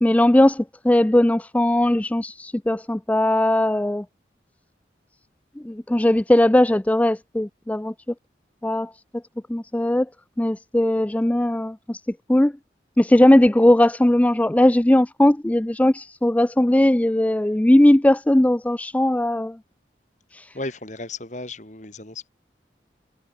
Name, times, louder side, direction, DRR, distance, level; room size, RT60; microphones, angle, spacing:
voice 1, 0.0-4.0 5.6-7.9 8.6-8.9 9.5-10.1 10.4-12.0 12.3-12.5 13.0-19.6 20.3-20.5, left 1 dB, 10° left, 0.3 m, -18 dB
voice 2, 20.5-22.3, left 2 dB, 45° left, 4.6 m, -34 dB
head